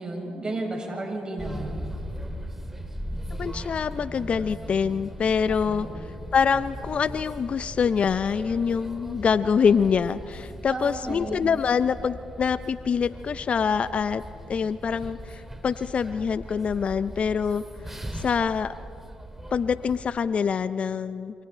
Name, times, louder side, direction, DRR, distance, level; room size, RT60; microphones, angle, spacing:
voice 1, 0.0-1.8 5.6-5.9 10.7-11.5, right 2 dB, 30° right, 0 dB, 7.4 m, -33 dB
sound 1, 1.4-20.1, equal, 10° right, 3.0 m, -39 dB
voice 2, 3.4-5.9 6.3-17.6 18.1-18.7 19.5-21.4, left 6 dB, 50° left, 15 dB, 0.6 m, -25 dB
27.0 x 26.5 x 4.5 m, 2.4 s
hypercardioid pair, 45°, 3 cm